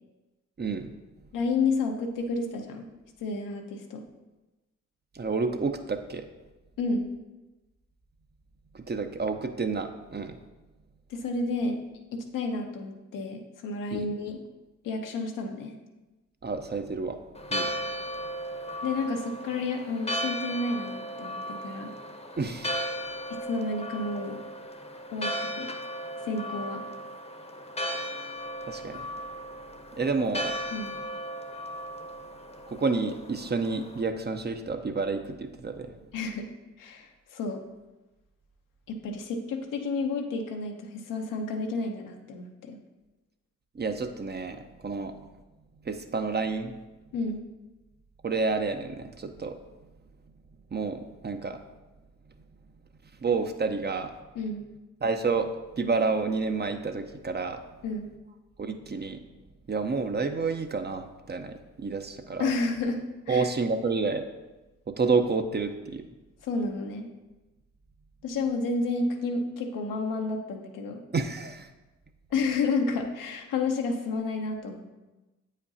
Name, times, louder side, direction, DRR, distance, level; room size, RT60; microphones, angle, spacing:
voice 1, 0.6-0.9 5.1-6.3 8.7-10.4 13.9-14.1 16.4-17.2 17.5-17.7 22.4-22.8 28.7-29.1 29.9-30.6 32.7-35.9 43.7-45.2 45.8-46.7 48.2-49.6 50.7-51.6 53.2-54.1 55.0-57.6 58.6-59.2 59.7-62.5 63.3-64.2 64.9-66.0 71.1-71.7, right 4 dB, 30° right, 7 dB, 0.7 m, -29 dB
voice 2, 1.3-2.9 3.2-4.0 6.8-7.1 11.1-11.8 12.1-14.4 14.8-15.8 18.8-21.9 23.3-24.4 25.1-25.7 26.2-26.8 30.7-30.9 36.1-36.5 36.8-37.6 38.9-42.8 47.1-47.4 54.3-54.6 57.8-58.1 62.4-63.5 66.4-67.1 68.2-71.0 72.3-74.9, left 3 dB, 75° left, 4 dB, 0.8 m, -31 dB
Church bell, 17.4-34.0, equal, 20° left, 0.8 m, -36 dB
8.4 x 5.1 x 2.8 m, 1.1 s
hypercardioid pair, 40°, 32 cm